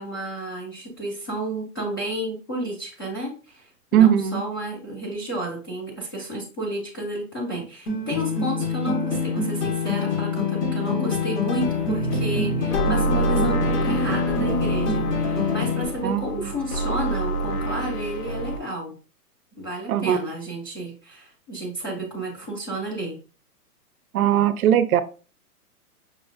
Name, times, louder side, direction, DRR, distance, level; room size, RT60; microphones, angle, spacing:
voice 1, 0.0-19.0 19.6-23.2, right 1 dB, 15° left, -4 dB, 0.4 m, -31 dB
voice 2, 3.9-4.4 16.0-16.5 19.9-20.2 24.1-25.0, right 10 dB, 65° right, 12 dB, 0.5 m, -19 dB
sound 1, 7.9-15.9, left 5 dB, 90° left, 1.7 m, -25 dB
sound 2, 11.6-18.6, right 2 dB, 70° left, 1.1 m, -27 dB
5.5 x 2.3 x 2.5 m, 0.35 s
hypercardioid pair, 150°, 46 cm